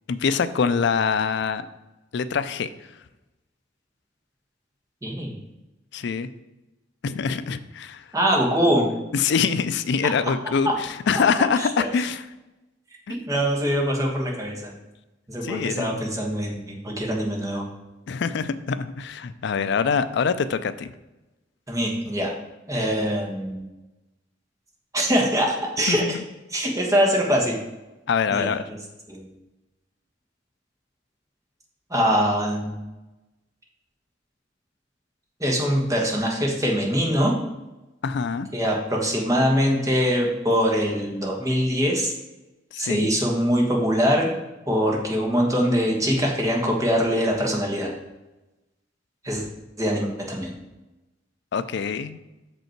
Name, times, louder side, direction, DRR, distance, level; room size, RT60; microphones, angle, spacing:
voice 1, 0.1-1.7 2.1-2.7 5.9-6.3 7.0-8.0 9.1-12.2 13.1-13.2 15.4-16.0 18.1-20.9 25.9-26.2 28.1-28.6 38.0-38.5 42.7-43.1 51.5-52.2, left 6 dB, 65° left, 13 dB, 0.4 m, -24 dB
voice 2, 5.0-5.3 8.1-8.9 10.6-10.7 11.6-11.9 13.3-14.7 15.3-17.7 21.7-22.3 22.7-23.6 24.9-26.0 26.5-27.6 28.3-28.8 29.1-29.2 31.9-32.8 35.4-37.3 38.5-42.1 42.8-44.3 44.7-47.9 49.2-49.5 49.8-50.5, equal, 15° right, -1 dB, 1.4 m, -23 dB
6.5 x 5.3 x 4.5 m, 1.0 s
head